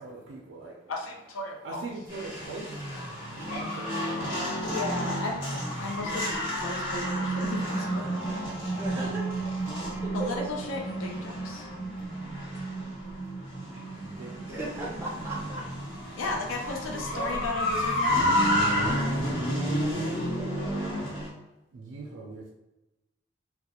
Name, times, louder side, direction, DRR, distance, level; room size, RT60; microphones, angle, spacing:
voice 1, 0.0-0.8 1.6-2.7 3.5-4.7 5.5-6.2 9.7-9.8 14.0-14.6 16.9-17.5 19.2-19.3 21.7-22.5, right 3 dB, 65° right, -3 dB, 0.3 m, -41 dB
voice 2, 0.9-1.9 3.5-3.9 4.6-5.3 5.8-8.3 10.1-11.7 16.2-18.7 19.0-19.8, left 3 dB, 85° left, 0 dB, 0.5 m, -36 dB
sound 1, 2.1-21.3, equal, 60° left, 1.2 m, -31 dB
sound 2, 6.7-17.6, right 3 dB, 10° left, 1.2 m, -35 dB
voice 3, 8.8-9.3 9.8-10.5 13.7-13.8 14.4-15.7, right 2 dB, 10° right, -4 dB, 0.5 m, -36 dB
2.3 x 2.0 x 2.8 m, 0.97 s
head